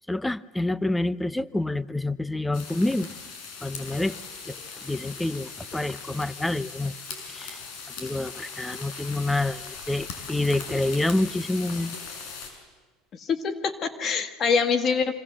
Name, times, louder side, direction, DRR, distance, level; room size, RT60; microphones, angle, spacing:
voice 1, 0.1-3.1 3.6-4.1 4.5-4.6 4.8-6.9 7.3-7.6 8.0-12.0, left 2 dB, 5° left, 16 dB, 0.8 m, -27 dB
sound 1, 2.5-12.5, left 5 dB, 65° left, 6.6 m, -39 dB
voice 2, 13.2-15.1, left 5 dB, 40° left, 9 dB, 1.8 m, -25 dB
29.0 x 25.5 x 7.6 m, 1.3 s
supercardioid pair, 115°, 0 cm